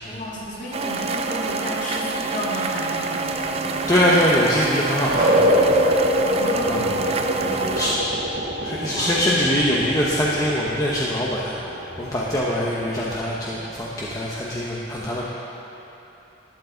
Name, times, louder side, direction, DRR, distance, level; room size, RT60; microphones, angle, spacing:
voice 1, 0.1-3.4 6.2-7.0 7.3-7.9 8.9-9.2, equal, 40° left, -6 dB, 2.2 m, -32 dB
sound 1, 0.7-7.9, right 4 dB, 30° right, 0.5 m, -27 dB
sound 2, 2.5-13.9, equal, 50° right, 1.1 m, -26 dB
voice 2, 3.9-5.5 6.7-7.0 7.7-7.9 8.6-11.5 12.0-15.2, equal, 20° left, -6 dB, 0.8 m, -23 dB
12.0 x 11.5 x 4.0 m, 3.0 s
head